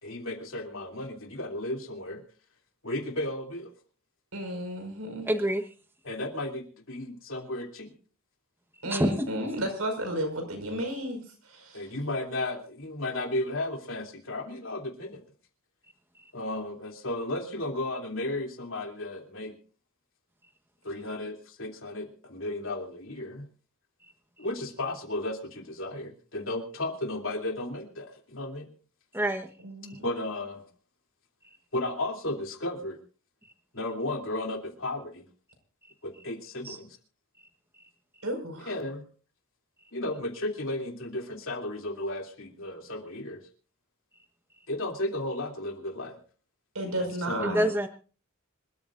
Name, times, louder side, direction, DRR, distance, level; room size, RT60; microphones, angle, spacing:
voice 1, 0.0-2.2 2.8-3.7 6.0-7.9 11.7-15.2 16.3-19.6 20.8-23.5 24.4-28.7 30.0-30.7 31.7-33.0 33.7-35.3 36.0-37.0 38.6-39.0 39.9-43.4 44.7-46.2 47.0-47.7, left 1 dB, 65° left, 3 dB, 3.0 m, -34 dB
voice 2, 4.3-5.3 8.8-11.9 29.6-30.1 38.2-38.7 46.7-47.7, right 1 dB, 85° right, 5 dB, 5.3 m, -33 dB
voice 3, 5.3-5.6 8.9-9.3 29.1-29.5 36.6-36.8 47.4-47.9, equal, 10° right, 6 dB, 1.2 m, -26 dB
25.5 x 14.0 x 2.6 m, 0.38 s
head